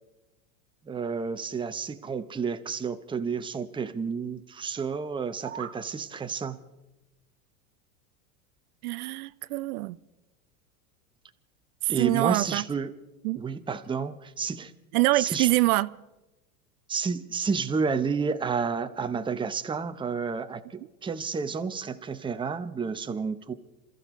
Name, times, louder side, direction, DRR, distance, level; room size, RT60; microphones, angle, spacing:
voice 1, 0.8-6.6 11.9-12.9 13.3-14.7 15.1-15.5 16.9-23.5, right 5 dB, 10° right, 0.8 m, -30 dB
sound 1, 5.1-5.8, right 9 dB, 30° right, 1.4 m, -40 dB
voice 2, 8.8-10.0 11.8-12.6 13.2-13.4 14.9-15.9, right 19 dB, 75° right, 0.6 m, -25 dB
27.5 x 14.0 x 3.7 m
supercardioid pair, 120°, 44 cm